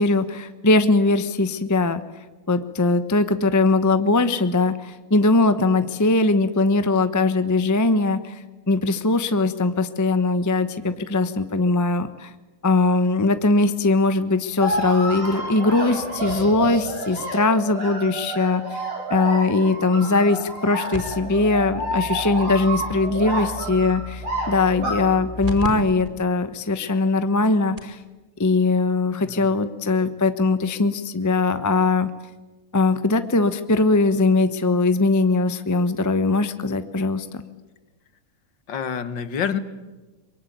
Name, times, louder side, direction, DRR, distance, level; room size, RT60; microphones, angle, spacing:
voice 1, 0.0-2.0 2.5-8.4 8.7-12.3 12.6-18.8 19.1-28.0 28.4-32.1 32.7-37.4, left 3 dB, 25° left, 11 dB, 0.4 m, -20 dB
sound 1, 14.6-24.9, right 1 dB, 80° right, 7.0 m, -29 dB
sound 2, 20.9-25.7 26.0-26.1 26.8-26.9 27.4-27.5 27.8-28.0 29.3-29.4, left 2 dB, 15° right, 4.7 m, -35 dB
voice 2, 38.7-39.6, left 7 dB, 60° left, 12 dB, 1.9 m, -27 dB
24.5 x 22.5 x 9.4 m, 1.2 s
omnidirectional pair, 2.3 m